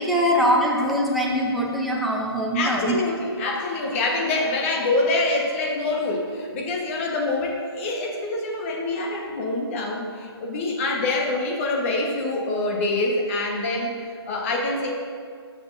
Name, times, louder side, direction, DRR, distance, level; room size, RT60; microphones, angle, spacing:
voice 1, 0.0-3.0, equal, ahead, -3 dB, 0.6 m, -22 dB
voice 2, 2.5-13.9 14.2-14.9, left 2 dB, 30° left, 0 dB, 1.2 m, -25 dB
12.5 x 6.2 x 2.6 m, 2.1 s
hypercardioid pair, 150°, 14 cm